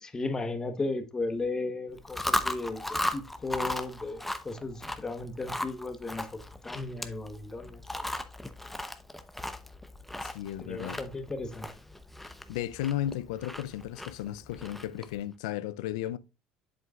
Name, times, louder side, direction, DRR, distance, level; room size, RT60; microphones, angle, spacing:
voice 1, 0.0-8.2 10.6-11.7, left 2 dB, 20° left, 1.2 m, -35 dB
Chewing mastication, 2.0-15.2, left 1 dB, 5° left, 0.8 m, -37 dB
voice 2, 10.2-11.0 12.2-16.2, left 12 dB, 90° left, 0.5 m, -34 dB
7.9 x 7.7 x 2.4 m
supercardioid pair, 100°, 3 cm